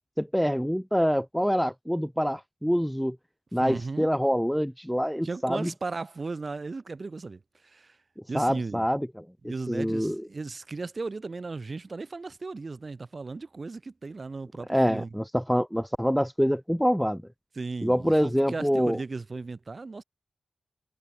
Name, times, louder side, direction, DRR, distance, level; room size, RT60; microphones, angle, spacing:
voice 1, 0.2-3.2 3.5-5.7 8.3-9.2 9.7-10.2 14.7-17.2 17.8-19.0, equal, ahead, 1.1 m, -25 dB
voice 2, 3.6-4.1 5.2-8.0 8.3-8.8 9.4-15.1 17.6-20.0, right 3 dB, 50° right, 5.8 m, -36 dB
cardioid pair, 50°, 0 cm